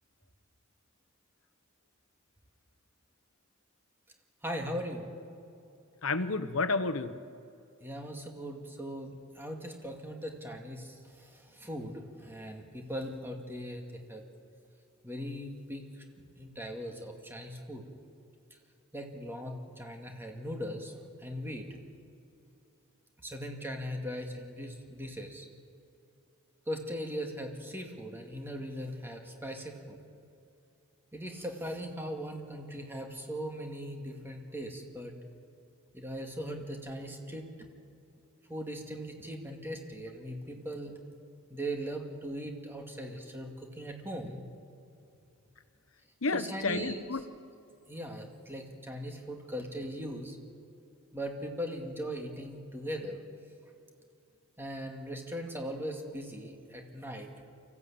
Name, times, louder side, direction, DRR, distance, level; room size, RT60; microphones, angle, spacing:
voice 1, 4.4-5.1 7.8-14.2 15.0-17.8 18.5-18.6 18.9-20.9 21.2-21.7 23.2-25.5 26.7-30.0 31.1-35.1 35.9-37.5 38.5-41.0 41.5-44.4 46.3-47.0 47.9-50.4 51.1-53.2 54.6-57.3, equal, 10° right, 2 dB, 2.2 m, -39 dB
voice 2, 6.0-7.1 46.2-47.2, left 3 dB, 70° left, 12 dB, 1.1 m, -30 dB
24.5 x 15.0 x 8.6 m, 2.7 s
head